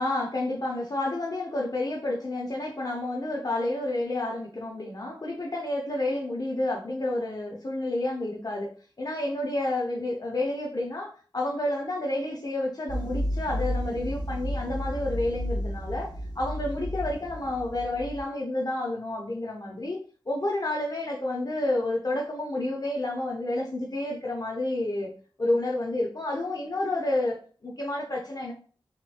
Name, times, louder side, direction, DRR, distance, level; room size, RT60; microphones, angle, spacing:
voice 1, 0.0-25.1 25.4-28.5, left 1 dB, 45° left, 0.6 m, -30 dB
sound 1, 12.9-18.2, equal, 50° right, 0.7 m, -32 dB
3.3 x 2.9 x 2.3 m
wide cardioid pair, 65°, 9 cm